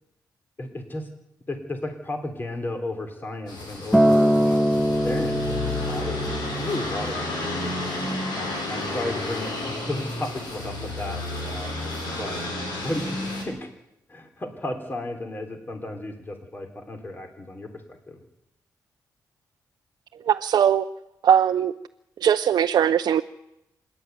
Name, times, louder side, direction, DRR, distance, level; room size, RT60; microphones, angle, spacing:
voice 1, 0.6-1.1 1.5-5.4 5.9-6.2 6.5-7.3 8.4-11.7 12.2-12.4 12.8-13.7 14.1-17.7 18.1-18.2, left 2 dB, 30° left, 5 dB, 3.6 m, -33 dB
sound 1, 3.5-13.4, left 2 dB, 85° left, 7.5 m, -31 dB
Acoustic guitar, 3.9-8.2 9.1-9.2, equal, ahead, 1.3 m, -23 dB
voice 2, 20.3-20.9 21.2-21.7 22.2-23.2, right 9 dB, 75° right, 6 dB, 0.7 m, -20 dB
26.5 x 11.5 x 9.4 m, 0.85 s
cardioid pair, 85°, 7 cm